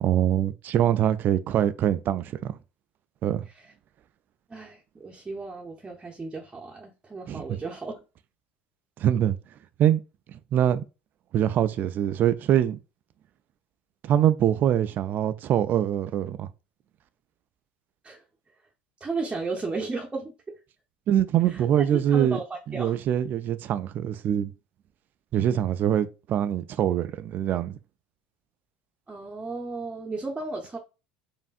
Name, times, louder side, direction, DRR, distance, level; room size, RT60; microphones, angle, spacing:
voice 1, 0.0-2.6 3.2-3.4 7.3-7.4 9.0-9.4 9.8-10.0 10.5-10.8 11.3-12.8 14.0-16.5 21.1-22.4 22.7-24.5 25.3-27.8, right 10 dB, 40° right, 0.3 m, -24 dB
voice 2, 4.5-7.9 18.0-18.2 19.0-20.6 21.5-21.6 22.1-22.9 29.1-30.8, right 3 dB, 15° right, 0.7 m, -34 dB
4.5 x 2.5 x 2.4 m
figure-of-eight pair, 70°, 5 cm